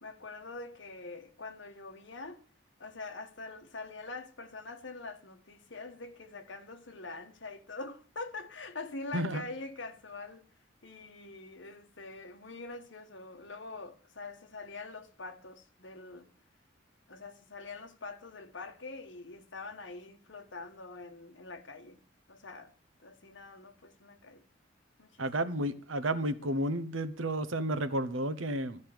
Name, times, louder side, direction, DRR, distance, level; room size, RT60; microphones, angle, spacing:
voice 1, 0.0-2.4 2.8-10.5 10.8-16.3 17.1-22.0 22.3-22.7 23.0-24.4 25.0-25.5, left 3 dB, 65° left, 1.4 m, -44 dB
voice 2, 25.2-28.8, right 1 dB, 85° right, 1.0 m, -32 dB
13.5 x 5.4 x 7.9 m
head